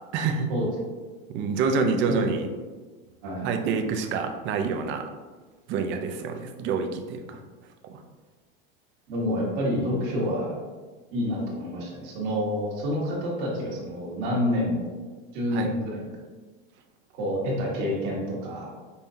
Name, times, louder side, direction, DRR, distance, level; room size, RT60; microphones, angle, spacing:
voice 1, 0.1-0.5 1.3-2.5 3.4-5.1 5.7-7.4 7.8-8.0 15.5-15.7, right 5 dB, 40° right, 5 dB, 0.5 m, -27 dB
voice 2, 9.1-10.6 11.1-14.9 15.3-16.0 17.1-18.7, equal, 60° right, -3 dB, 1.3 m, -28 dB
5.4 x 2.2 x 2.6 m, 1.3 s
supercardioid pair, 120°, 29 cm